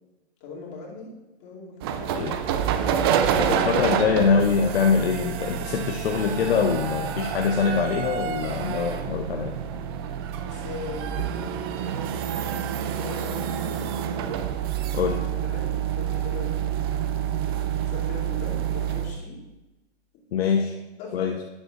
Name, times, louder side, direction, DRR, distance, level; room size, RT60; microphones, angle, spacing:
voice 1, 0.4-1.1 1.4-2.4 2.6-3.9 8.3-9.1 10.4-11.1 13.0-14.0 15.5-16.6 17.2-19.4 20.1-20.6 21.0-21.4, left 4 dB, 30° left, -4 dB, 2.8 m, -41 dB
sound 1, 1.8-19.2, right 9 dB, 25° right, 0.4 m, -28 dB
voice 2, 3.4-9.6 14.9-15.2 20.3-20.7 21.1-21.4, left 6 dB, 60° left, 3 dB, 0.8 m, -24 dB
11.5 x 9.9 x 2.5 m, 1.0 s
figure-of-eight pair, 115°, 34 cm